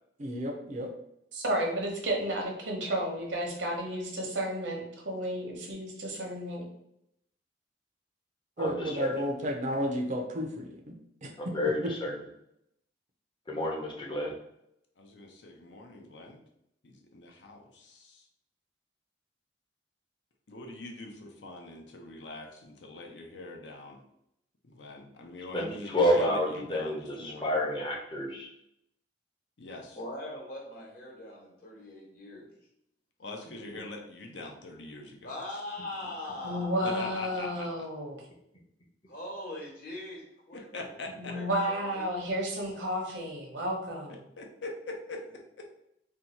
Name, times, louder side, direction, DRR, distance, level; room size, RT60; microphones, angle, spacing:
voice 1, 0.2-0.9 8.6-10.9 11.2-11.3, equal, 40° right, 2 dB, 0.5 m, -32 dB
voice 2, 1.3-6.6 36.4-38.3 41.2-44.2, equal, 75° right, 0 dB, 0.9 m, -32 dB
voice 3, 8.6-9.1 11.4-12.1 13.5-14.3 25.5-28.5, left 1 dB, 25° left, -1 dB, 0.7 m, -29 dB
voice 4, 15.0-16.4 16.8-18.3 20.5-24.0 24.6-27.6 29.6-30.0 33.2-35.3 36.8-37.7 40.5-41.3 44.4-45.2, left 2 dB, 70° left, 2 dB, 0.6 m, -43 dB
voice 5, 29.9-32.5 35.2-36.9 39.1-40.2 40.5-40.9 41.2-42.0, left 1 dB, 55° left, -2 dB, 1.1 m, -41 dB
2.7 x 2.3 x 4.1 m, 0.78 s
head